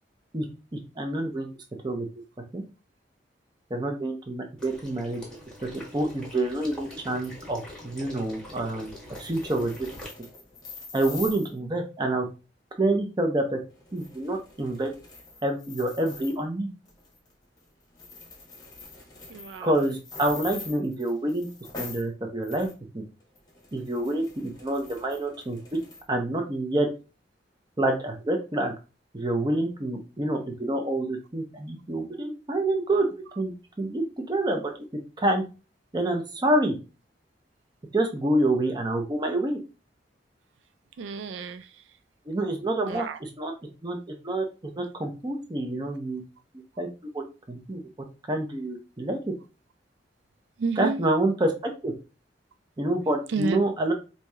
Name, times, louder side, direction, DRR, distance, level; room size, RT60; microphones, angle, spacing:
voice 1, 0.7-1.5 1.8-2.1 2.5-2.6 3.7-5.2 5.6-8.9 9.2-9.7 10.9-12.3 12.8-13.6 13.9-14.9 15.4-16.7 19.6-21.5 21.8-22.7 22.9-23.0 23.7-25.6 26.1-26.9 27.8-28.7 29.1-33.1 33.4-33.5 33.8-34.6 35.2-35.4 35.9-36.8 37.9-39.6 42.3-43.5 43.8-46.2 46.8-46.9 47.1-47.8 48.3-49.3 50.8-51.9 52.8-53.9, right 1 dB, 25° right, 3 dB, 0.7 m, -27 dB
Water / Liquid, 4.6-10.1, left 1 dB, 5° left, 1.2 m, -44 dB
sound 1, 9.0-11.5 13.7-16.4 16.9-17.3 17.6-17.7 17.9-22.1 22.4-22.7 23.2-26.0, left 3 dB, 20° left, 1.0 m, -44 dB
voice 2, 19.3-19.7 41.0-41.8 42.8-43.2 50.6-51.0 53.3-53.6, right 4 dB, 85° right, 11 dB, 0.3 m, -31 dB
4.6 x 2.7 x 2.3 m, 0.31 s
head